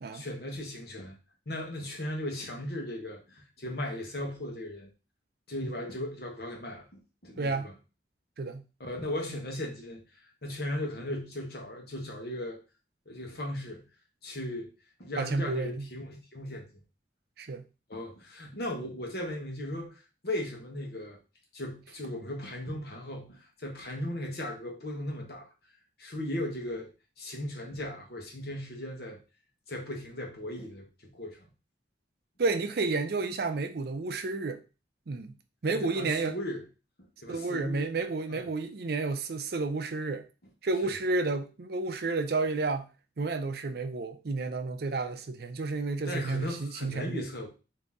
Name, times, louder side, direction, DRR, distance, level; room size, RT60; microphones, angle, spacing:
voice 1, 0.1-1.2 1.5-4.9 5.5-6.9 7.2-7.7 8.8-12.6 13.1-13.8 14.2-14.7 15.0-16.8 17.9-21.2 21.5-25.5 26.0-26.9 27.2-29.2 29.7-31.5 35.7-36.6 37.2-37.9 38.3-38.4 40.8-40.9 46.1-47.5, left 1 dB, 55° left, 1.2 m, -37 dB
voice 2, 7.4-7.7 8.4-8.6 15.2-15.9 17.4-17.6 32.4-34.6 35.1-35.4 35.6-36.3 37.3-40.3 40.6-42.9 43.2-47.3, right 3 dB, 60° right, 0.5 m, -31 dB
3.9 x 2.8 x 3.5 m
head